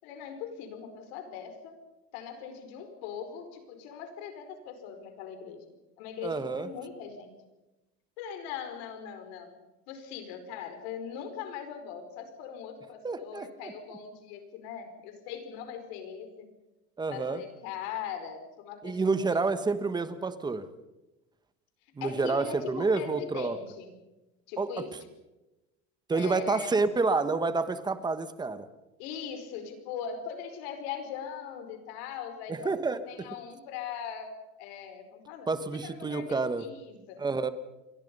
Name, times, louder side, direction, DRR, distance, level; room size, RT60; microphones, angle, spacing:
voice 1, 0.0-1.8 2.1-5.6 6.0-7.3 8.2-9.5 9.9-16.3 17.1-19.4 22.0-23.9 24.5-24.9 26.1-26.7 29.0-32.7 33.0-35.5 35.8-37.2, left 7 dB, 75° left, 7 dB, 5.0 m, -40 dB
voice 2, 6.2-6.7 13.0-13.7 17.0-17.4 18.8-20.6 22.0-23.6 24.6-24.8 26.1-28.7 32.5-33.3 35.5-36.7 37.2-37.5, right 3 dB, 15° right, 12 dB, 1.3 m, -29 dB
29.0 x 22.5 x 5.5 m, 1.0 s
cardioid pair, 150°, 31 cm